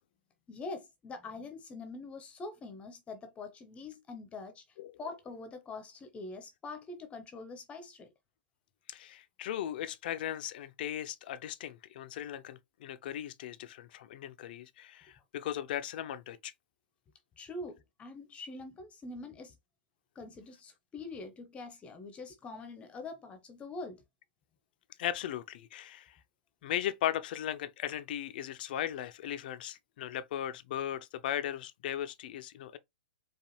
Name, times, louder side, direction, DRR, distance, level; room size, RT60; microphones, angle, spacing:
voice 1, 0.5-4.6 5.0-8.1 17.4-19.5 20.1-24.0, left 3 dB, 20° left, 0.7 m, -44 dB
voice 2, 8.9-16.5 25.0-26.2 26.6-32.8, left 11 dB, 55° left, 0.5 m, -37 dB
4.7 x 2.4 x 3.1 m
hypercardioid pair, 115°, 6 cm